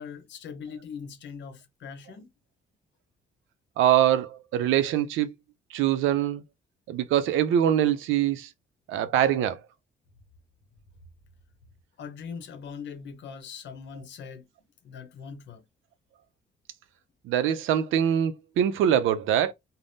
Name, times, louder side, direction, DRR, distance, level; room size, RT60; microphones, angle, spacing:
voice 1, 0.0-2.3 12.0-14.5 14.8-15.6, left 6 dB, 65° left, 0.7 m, -41 dB
voice 2, 3.8-5.3 5.7-6.4 6.9-8.5 8.9-9.6 17.2-19.5, right 10 dB, 85° right, 0.4 m, -23 dB
3.3 x 2.0 x 2.6 m
cardioid pair, 90°, 20 cm